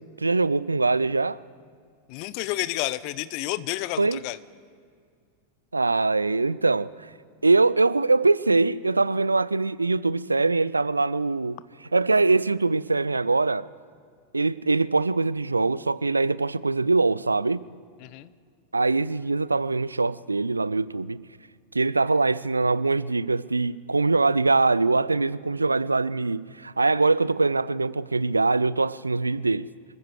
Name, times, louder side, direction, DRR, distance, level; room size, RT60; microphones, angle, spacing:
voice 1, 0.0-1.4 4.0-4.2 5.7-6.9 7.4-11.6 11.9-13.7 14.3-17.6 18.7-21.2 21.7-29.7, right 3 dB, 80° right, 0.3 m, -23 dB
voice 2, 2.1-4.4 18.0-18.3, left 17 dB, 45° left, 0.6 m, -30 dB
27.0 x 15.0 x 3.3 m
figure-of-eight pair, 90°, 0 cm